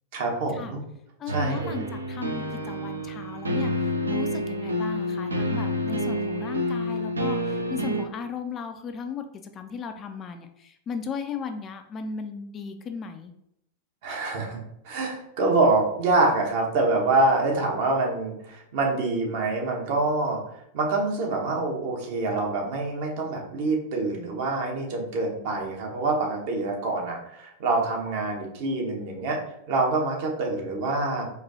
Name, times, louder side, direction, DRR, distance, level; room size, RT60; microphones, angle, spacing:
voice 1, 0.1-0.8 1.3-1.9 14.0-14.6 14.8-20.4 20.7-29.4 29.7-31.2, right 2 dB, 50° right, 0 dB, 0.9 m, -26 dB
voice 2, 1.2-9.2 9.5-13.3, left 6 dB, 30° left, 7 dB, 0.3 m, -36 dB
sound 1, 1.3-8.0, equal, 80° right, 0.4 m, -28 dB
4.1 x 2.6 x 2.7 m, 0.78 s
figure-of-eight pair, 90°, 0 cm